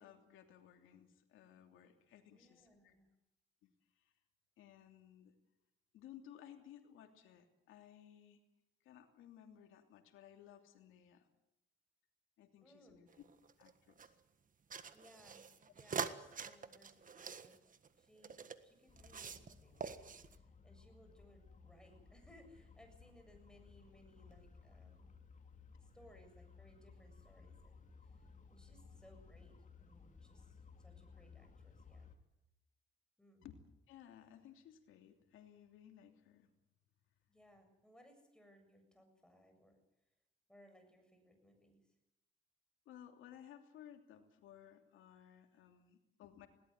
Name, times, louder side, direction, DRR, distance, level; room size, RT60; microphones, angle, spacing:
voice 1, 0.0-3.0 3.6-3.7 4.0-4.1 4.6-5.3 5.9-8.4 8.8-11.3 12.4-13.1 13.6-14.1 33.4-36.5 42.8-46.5, left 10 dB, 90° left, 5 dB, 3.0 m, -59 dB
voice 2, 2.2-3.1 12.6-13.0 14.9-17.6 17.9-25.2 25.7-32.1 33.2-33.5 37.3-39.8 40.5-41.9, equal, 5° left, 4 dB, 7.5 m, -65 dB
sound 1, 13.1-14.1 14.7-18.6 19.0-19.5 19.8-20.4, right 6 dB, 40° right, 1.6 m, -45 dB
sound 2, 18.9-32.2, left 5 dB, 40° left, 2.7 m, -60 dB
20.5 x 18.0 x 9.5 m, 0.91 s
cardioid pair, 90°, 20 cm